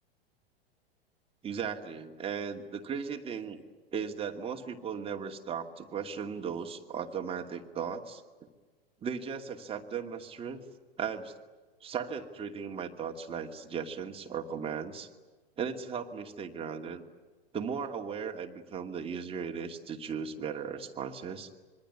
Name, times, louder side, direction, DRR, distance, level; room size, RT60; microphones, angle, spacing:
voice 1, 1.4-3.6 3.9-8.2 9.0-10.6 11.0-11.3 11.8-15.1 15.6-17.0 17.5-21.5, right 6 dB, 20° right, 3 dB, 2.5 m, -37 dB
26.0 x 23.5 x 9.8 m, 1.3 s
figure-of-eight pair, 100°, 31 cm